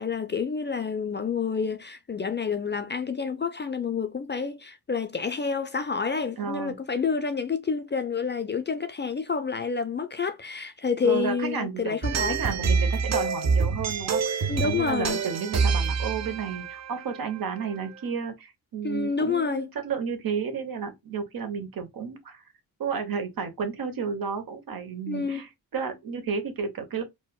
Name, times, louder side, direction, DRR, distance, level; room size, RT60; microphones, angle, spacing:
voice 1, 0.0-12.4 14.5-15.2 18.8-19.7 25.1-25.5, left 5 dB, 30° left, 0.4 m, -28 dB
voice 2, 6.4-6.8 11.0-12.0 12.2-22.4 22.8-27.0, right 6 dB, 65° right, 0.9 m, -32 dB
sound 1, 12.0-17.8, right 5 dB, 45° right, 0.5 m, -27 dB
4.2 x 2.2 x 2.2 m
cardioid pair, 85°, 39 cm